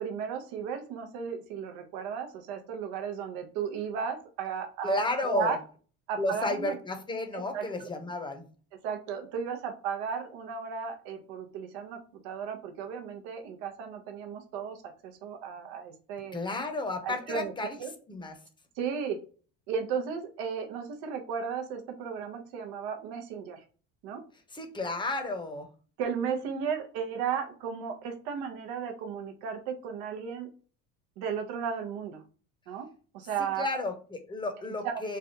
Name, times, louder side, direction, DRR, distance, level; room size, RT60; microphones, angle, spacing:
voice 1, 0.0-5.6 6.1-6.7 7.3-7.9 8.8-12.0 12.2-16.4 17.0-17.5 17.8-17.9 18.8-19.2 19.7-23.6 24.0-24.2 26.0-30.5 31.2-32.2 32.7-32.9 33.1-33.7 34.8-34.9, right 7 dB, 80° right, 5 dB, 0.8 m, -35 dB
voice 2, 4.8-5.6 6.2-8.5 16.3-17.8 18.1-18.3 24.5-25.7 33.6-35.2, left 2 dB, 15° left, 6 dB, 0.7 m, -32 dB
3.3 x 2.3 x 2.7 m, 0.38 s
supercardioid pair, 100°, 37 cm